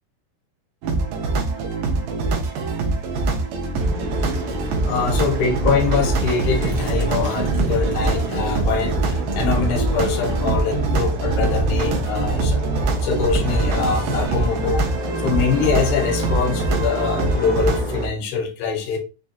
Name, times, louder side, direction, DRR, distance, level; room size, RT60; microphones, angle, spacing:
sound 1, 0.8-17.8, right 3 dB, 80° right, 2.0 m, -23 dB
sound 2, 3.8-18.1, left 1 dB, 60° right, 1.6 m, -29 dB
voice 1, 4.9-12.6 13.0-14.9 15.2-19.0, left 5 dB, 80° left, 2.9 m, -23 dB
6.6 x 2.4 x 2.7 m
omnidirectional pair, 4.7 m